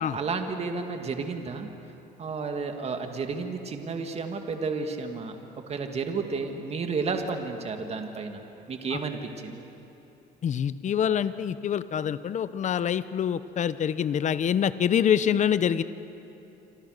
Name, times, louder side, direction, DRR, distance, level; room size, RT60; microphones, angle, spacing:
voice 1, 0.1-1.7 2.2-5.3 5.7-8.4 8.7-9.6, right 4 dB, 40° right, 5 dB, 2.4 m, -32 dB
voice 2, 10.4-15.8, left 8 dB, 45° left, 14 dB, 0.9 m, -25 dB
28.0 x 26.0 x 6.7 m, 3.0 s
cardioid pair, 110°, 17 cm